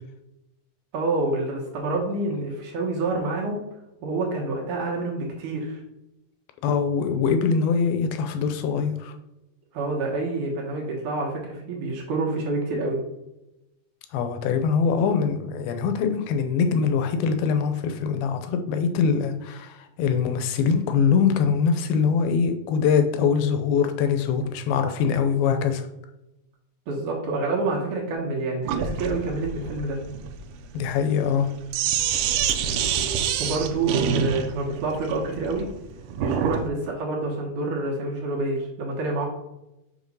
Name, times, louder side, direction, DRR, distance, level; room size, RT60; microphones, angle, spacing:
voice 1, 0.9-3.6 4.0-5.8 9.7-13.0 26.9-30.0 33.4-35.7 36.2-39.3, right 3 dB, 65° right, -2 dB, 2.5 m, -27 dB
voice 2, 6.6-9.1 14.1-25.8 30.7-31.5, left 6 dB, 80° left, 7 dB, 2.5 m, -23 dB
Sink (filling or washing), 28.7-36.7, right 7 dB, 85° right, 1.8 m, -27 dB
7.4 x 3.6 x 5.3 m, 0.92 s
omnidirectional pair, 4.4 m